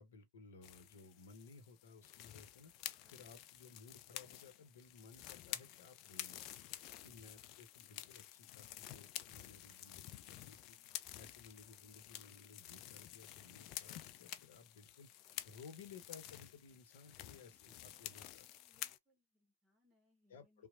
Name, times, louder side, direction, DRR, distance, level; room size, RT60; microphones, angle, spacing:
voice 1, 0.0-2.7 3.1-6.4 7.0-10.8 11.1-15.1 15.4-18.4 20.3-20.7, left 4 dB, 60° left, 0.9 m, -58 dB
sound 1, 0.6-19.0, left 13 dB, 35° left, 0.3 m, -51 dB
voice 2, 17.0-20.7, right 1 dB, 15° right, 1.1 m, -75 dB
2.9 x 2.1 x 2.4 m
figure-of-eight pair, 105°, 0 cm